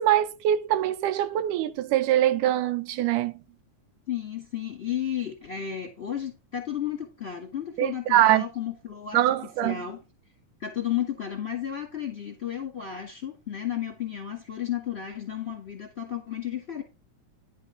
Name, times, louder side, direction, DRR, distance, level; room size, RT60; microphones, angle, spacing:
voice 1, 0.0-3.3 7.8-8.4 9.1-9.8, right 12 dB, 85° right, 2.3 m, -23 dB
voice 2, 4.1-9.2 9.6-10.0 10.6-16.8, left 10 dB, 25° left, 1.6 m, -33 dB
10.5 x 5.0 x 5.1 m
omnidirectional pair, 3.5 m